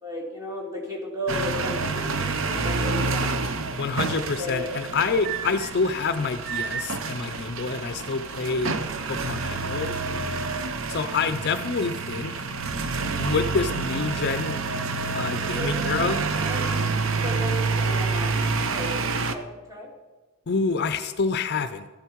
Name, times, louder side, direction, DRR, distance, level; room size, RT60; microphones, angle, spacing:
voice 1, 0.0-3.3 4.3-4.8 15.4-16.7 17.1-18.4 18.7-19.9, left 1 dB, 15° right, -2 dB, 2.5 m, -34 dB
sound 1, 1.3-19.4, right 4 dB, 60° right, 0.7 m, -28 dB
voice 2, 3.8-8.8 9.1-10.0 10.9-12.3 13.2-14.6 15.1-16.2 20.5-21.9, left 4 dB, 50° left, 11 dB, 0.5 m, -27 dB
13.0 x 11.5 x 4.6 m, 1.3 s
head